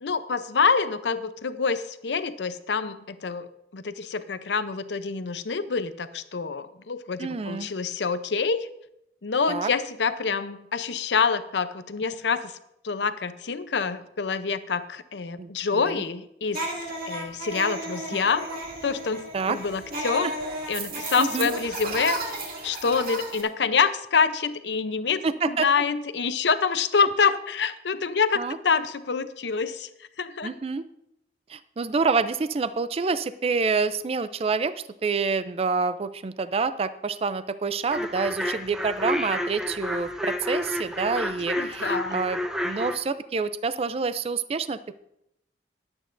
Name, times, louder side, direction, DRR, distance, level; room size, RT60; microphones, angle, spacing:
voice 1, 0.0-8.7 9.2-12.5 12.8-16.7 17.1-18.5 18.8-20.3 20.7-22.3 22.6-29.9 30.2-30.6 41.6-42.2, left 5 dB, 80° left, 12 dB, 0.7 m, -26 dB
voice 2, 7.2-7.7 9.5-9.7 15.4-16.0 19.3-19.6 21.2-21.5 25.2-25.7 28.4-28.6 30.4-30.8 31.5-34.7 35.0-42.4 42.6-44.9, right 4 dB, 35° right, 13 dB, 0.4 m, -27 dB
sound 1, 16.5-23.4, right 2 dB, 55° right, 2.5 m, -33 dB
sound 2, 37.9-43.0, equal, 5° right, 0.8 m, -30 dB
21.0 x 8.7 x 2.6 m, 0.80 s
head